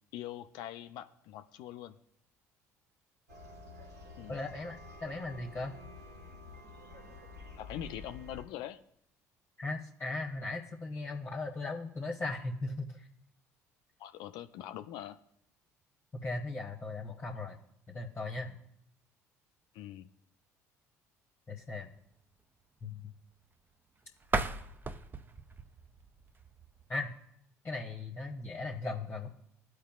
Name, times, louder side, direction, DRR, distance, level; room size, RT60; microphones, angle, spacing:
voice 1, 0.1-2.0 4.2-4.4 7.6-8.8 14.0-15.2 19.7-20.1, left 11 dB, 60° left, 9 dB, 0.4 m, -43 dB
sound 1, 3.3-8.4, left 2 dB, 85° right, 1.6 m, -50 dB
voice 2, 4.3-5.8 9.6-13.1 16.1-17.6 17.9-18.6 21.5-21.9 22.8-23.1 26.9-27.1 27.6-29.3, left 2 dB, 25° left, -1 dB, 1.0 m, -38 dB
sound 2, 24.2-27.1, right 3 dB, 25° right, 0.5 m, -37 dB
14.0 x 4.8 x 2.4 m, 0.74 s
figure-of-eight pair, 55°, 8 cm